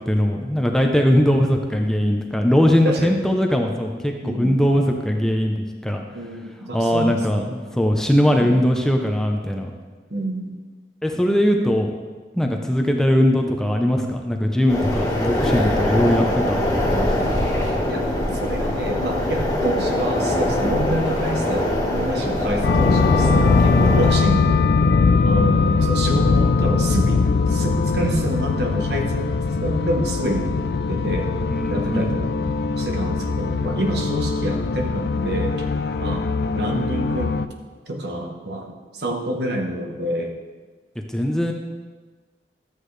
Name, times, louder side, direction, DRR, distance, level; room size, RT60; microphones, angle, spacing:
voice 1, 0.0-6.0 6.7-9.7 11.0-11.9 12.3-17.5 31.5-32.1 41.1-41.5, equal, 5° left, 2 dB, 0.6 m, -20 dB
voice 2, 2.8-3.2 4.2-4.6 6.1-7.5 10.1-10.6 17.9-18.1 18.4-24.7 25.2-29.3 29.6-30.5 30.9-31.3 31.7-35.7 36.0-36.3 36.5-37.4 37.9-40.4, right 1 dB, 70° right, 2 dB, 1.2 m, -27 dB
sound 1, 14.7-24.1, left 1 dB, 20° left, 1.6 m, -23 dB
sound 2, 22.6-37.5, left 4 dB, 65° left, 0.4 m, -21 dB
13.0 x 8.3 x 3.3 m, 1.4 s
head